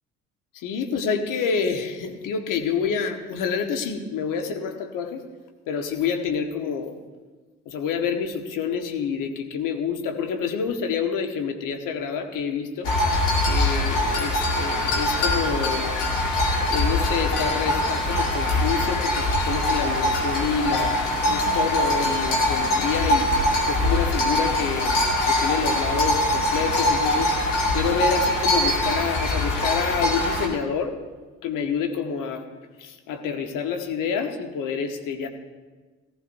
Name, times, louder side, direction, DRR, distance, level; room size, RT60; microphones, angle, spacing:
voice 1, 0.5-5.2 5.7-7.0 7.6-12.9 13.4-16.0 16.7-23.3 23.7-24.9 25.3-27.3 27.7-31.0 31.4-32.4 32.8-35.3, left 6 dB, 60° left, 5 dB, 1.5 m, -28 dB
sound 1, 12.8-30.5, left 1 dB, 85° left, 2.4 m, -23 dB
18.0 x 14.5 x 2.7 m, 1.3 s
hypercardioid pair, 50°, 35 cm